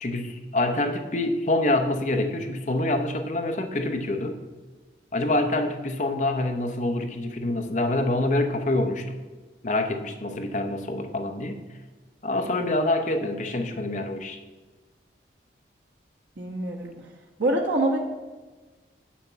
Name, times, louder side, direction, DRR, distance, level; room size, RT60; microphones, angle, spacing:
voice 1, 0.0-4.4 5.1-9.2 9.6-11.6 12.2-14.4, left 2 dB, 45° left, 6 dB, 0.8 m, -26 dB
voice 2, 16.4-16.9 17.4-18.0, right 1 dB, 85° right, -2 dB, 1.2 m, -25 dB
7.2 x 5.8 x 7.2 m, 1.3 s
head